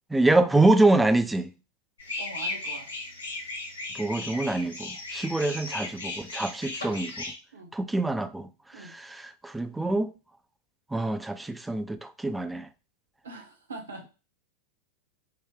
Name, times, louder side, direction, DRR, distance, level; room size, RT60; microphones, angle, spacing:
voice 1, 0.1-1.5 3.9-7.1 7.7-8.5 8.8-10.1 10.9-12.7, right 2 dB, 5° right, 0.3 m, -25 dB
sound 1, 2.0-7.3, left 2 dB, 75° left, 0.8 m, -36 dB
voice 2, 2.2-2.9 7.5-7.7 8.7-8.9 13.2-14.0, right 3 dB, 65° right, 0.9 m, -42 dB
3.7 x 2.1 x 3.6 m
figure-of-eight pair, 90°, 0 cm